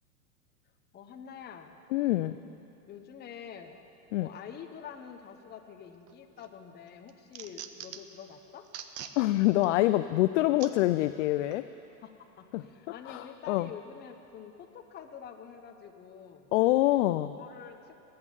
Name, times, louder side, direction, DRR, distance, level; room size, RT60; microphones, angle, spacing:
voice 1, 0.9-1.8 2.9-3.8 4.2-8.7 12.0-16.5 17.0-17.1 17.4-17.9, left 8 dB, 20° left, 4 dB, 1.0 m, -47 dB
voice 2, 1.9-2.4 4.1-4.3 9.2-11.6 12.5-12.6 13.1-13.7 16.5-17.3, left 16 dB, 55° left, 11 dB, 0.5 m, -25 dB
sound 1, 6.1-6.5 6.9-8.2 8.6-9.2 9.6-9.7 10.6-10.7 11.5-11.6, right 10 dB, 30° right, 0.8 m, -43 dB
20.0 x 8.7 x 7.2 m, 2.9 s
hypercardioid pair, 120°, 46 cm